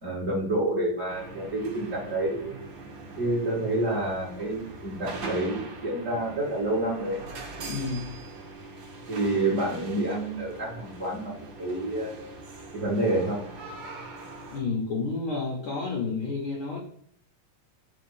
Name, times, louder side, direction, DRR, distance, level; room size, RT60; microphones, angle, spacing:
voice 1, 0.0-2.6 3.2-7.2 9.1-12.2 12.7-13.4, right 1 dB, 30° right, -5 dB, 1.8 m, -28 dB
sound 1, 1.1-14.6, right 3 dB, 85° right, 1.0 m, -42 dB
voice 2, 7.7-8.1 14.5-16.8, left 4 dB, 75° left, -2 dB, 1.2 m, -30 dB
5.0 x 3.4 x 5.6 m, 0.66 s
omnidirectional pair, 4.0 m